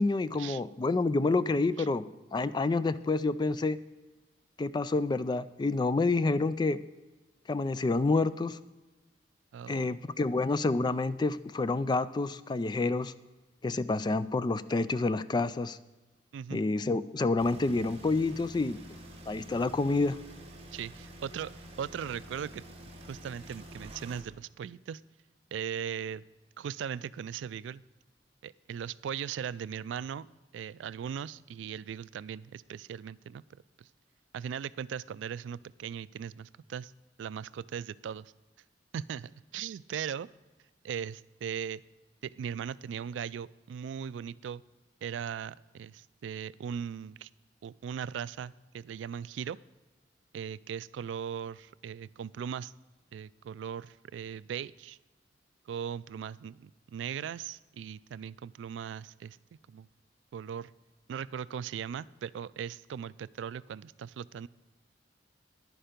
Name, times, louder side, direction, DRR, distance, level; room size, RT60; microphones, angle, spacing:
voice 1, 0.0-2.0 2.3-3.8 4.6-6.8 7.5-8.6 9.7-13.1 13.6-15.8 16.5-18.8 19.3-20.2, left 3 dB, 25° left, 15 dB, 0.3 m, -28 dB
voice 2, 9.5-10.0 16.3-16.6 20.7-22.6 23.1-25.0 25.5-26.2 26.6-27.8 28.4-30.3 30.5-33.4 33.8-33.9 34.3-36.9 37.2-38.3 38.9-40.3 40.8-41.8 42.2-44.6 45.0-47.3 47.6-49.6 50.3-52.7 53.1-55.0 55.7-59.4 59.7-59.9 60.3-60.7 61.1-64.5, right 8 dB, 90° right, 18 dB, 0.3 m, -38 dB
sound 1, 17.4-24.2, equal, 35° right, 1.5 m, -48 dB
10.5 x 10.0 x 5.1 m, 1.2 s
head